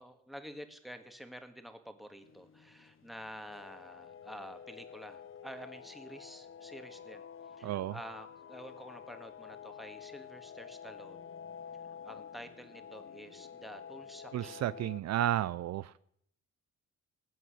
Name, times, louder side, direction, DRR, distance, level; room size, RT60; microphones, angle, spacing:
voice 1, 0.0-11.3 11.9-14.6, equal, ahead, 1.8 m, -49 dB
sound 1, 2.2-15.0, left 7 dB, 45° left, 0.8 m, -49 dB
voice 2, 7.6-7.9 14.3-15.9, right 12 dB, 60° right, 0.5 m, -32 dB
19.5 x 7.8 x 6.5 m
cardioid pair, 90°, 30 cm